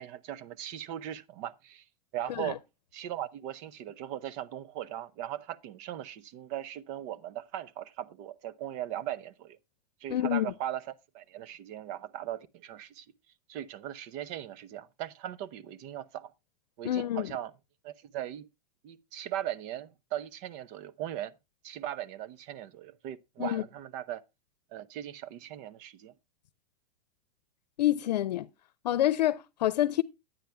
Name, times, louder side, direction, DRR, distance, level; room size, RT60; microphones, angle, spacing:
voice 1, 0.0-1.8 2.1-2.6 2.9-9.6 10.0-10.8 11.1-13.1 13.5-16.3 16.8-17.5 17.8-18.5 18.8-21.3 21.6-24.2 24.7-26.1, right 12 dB, 45° right, 0.9 m, -39 dB
voice 2, 10.1-10.5 16.8-17.3 23.4-23.6 27.8-28.5 28.8-30.0, left 13 dB, 90° left, 0.7 m, -27 dB
10.5 x 9.1 x 3.4 m
supercardioid pair, 140°, 21 cm